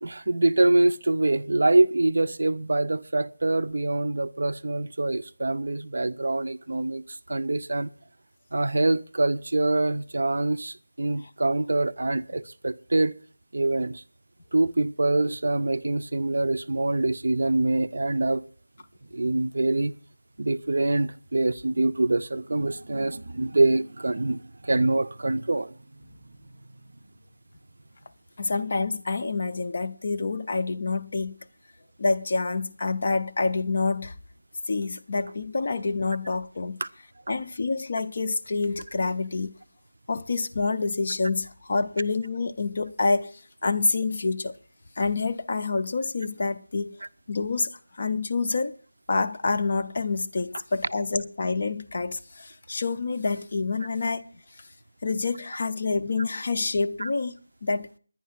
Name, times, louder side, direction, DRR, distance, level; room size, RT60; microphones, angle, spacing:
voice 1, 0.0-7.9 8.5-13.2 13.5-14.0 14.5-18.4 19.1-19.9 20.4-25.7 36.8-36.9 57.0-57.1, right 2 dB, 45° right, 0.5 m, -25 dB
voice 2, 28.4-31.4 32.0-34.1 34.7-36.8 37.3-39.5 40.1-44.6 45.0-46.9 47.3-48.7 49.1-54.3 55.0-58.0, left 3 dB, 25° left, 0.5 m, -27 dB
10.5 x 10.0 x 5.8 m
figure-of-eight pair, 180°, 0 cm